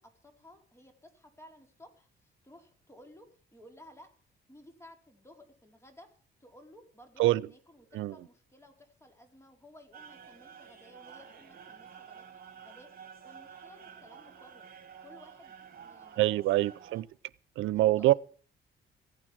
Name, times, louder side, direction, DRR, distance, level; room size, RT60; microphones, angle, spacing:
voice 1, 0.0-4.1 4.5-6.1 6.4-14.7 15.0-16.3 17.7-18.2, left 1 dB, 15° left, 4.6 m, -56 dB
sound 1, 9.9-17.0, right 7 dB, 45° right, 3.9 m, -51 dB
voice 2, 16.2-17.1 17.6-18.1, right 16 dB, 85° right, 0.7 m, -25 dB
15.5 x 9.3 x 7.6 m
cardioid pair, 90°, 20 cm